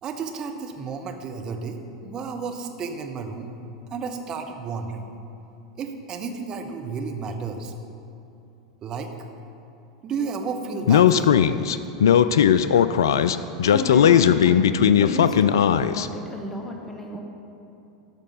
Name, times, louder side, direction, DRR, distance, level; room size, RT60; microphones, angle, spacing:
voice 1, 0.0-3.5 3.9-5.1 5.8-7.7 8.8-9.1 10.0-11.3, right 5 dB, 30° right, 4 dB, 1.0 m, -32 dB
Speech, 10.9-16.1, left 8 dB, 70° left, 0.3 m, -17 dB
voice 2, 13.6-14.7 15.0-17.2, left 1 dB, 15° left, 2 dB, 1.0 m, -33 dB
12.5 x 5.4 x 5.4 m, 2.8 s
figure-of-eight pair, 85°, 2 cm